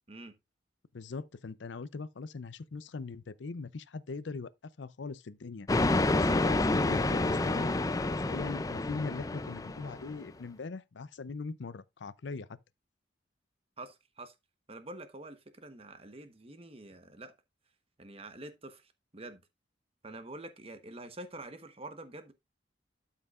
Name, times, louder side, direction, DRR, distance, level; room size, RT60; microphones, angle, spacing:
voice 1, 0.9-5.7 6.1-7.7 8.1-12.5, left 4 dB, 75° left, 0.6 m, -41 dB
sound 1, 5.7-10.2, left 2 dB, 20° left, 0.4 m, -29 dB
voice 2, 13.8-14.3 14.7-17.3 18.0-19.4 20.0-22.3, right 2 dB, 30° right, 1.1 m, -46 dB
12.0 x 5.6 x 2.4 m
head